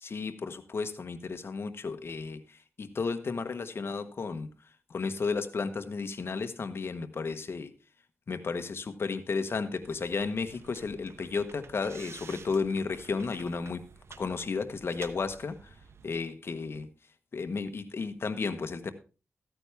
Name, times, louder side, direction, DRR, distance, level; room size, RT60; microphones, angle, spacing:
voice 1, 0.0-4.5 4.9-7.7 8.3-13.8 14.2-15.8 16.0-16.9 17.3-18.9, left 4 dB, 60° left, 9 dB, 1.1 m, -33 dB
sound 1, 9.8-16.2, right 5 dB, 70° right, 0.9 m, -51 dB
14.0 x 9.2 x 3.4 m, 0.33 s
wide cardioid pair, 105°, 5 cm